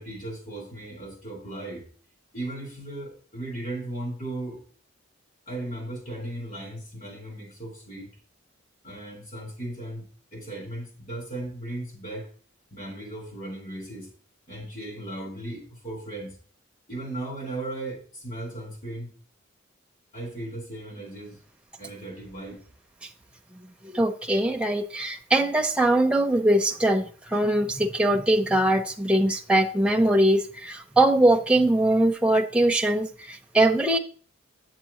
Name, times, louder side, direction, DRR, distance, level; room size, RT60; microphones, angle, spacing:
voice 1, 0.0-1.9 2.3-4.6 5.5-8.1 8.8-12.3 12.7-14.1 14.5-16.4 16.9-19.1 20.1-21.4 21.8-22.6, right 1 dB, 40° left, -1 dB, 3.9 m, -36 dB
voice 2, 23.9-27.0 27.3-34.0, right 1 dB, 5° right, 4 dB, 0.6 m, -22 dB
8.6 x 7.4 x 2.9 m, 0.43 s
head